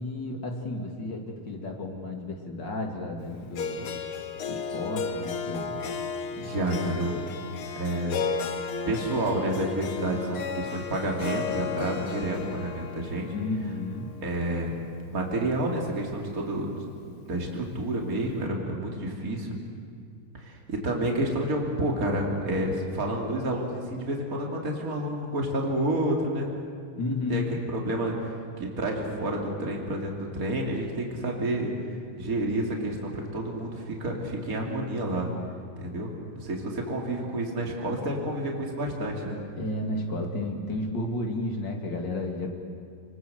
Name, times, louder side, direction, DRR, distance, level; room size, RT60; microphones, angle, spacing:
voice 1, 0.0-4.0 4.5-5.8 6.4-6.6 6.9-7.0 9.9-10.2 13.3-14.1 27.0-27.6 39.6-42.5, left 2 dB, 55° left, 2 dB, 3.1 m, -32 dB
Harp, 3.6-15.7, left 5 dB, 75° left, 2.2 m, -35 dB
voice 2, 6.4-7.2 7.8-8.2 8.9-13.3 14.2-14.7 15.1-16.7 17.0-19.5 20.3-26.5 27.3-28.3 28.6-31.7 32.2-35.3 35.8-36.1 36.4-39.4, right 1 dB, 40° right, 0 dB, 3.4 m, -29 dB
29.5 x 21.0 x 8.0 m, 2.2 s
omnidirectional pair, 2.4 m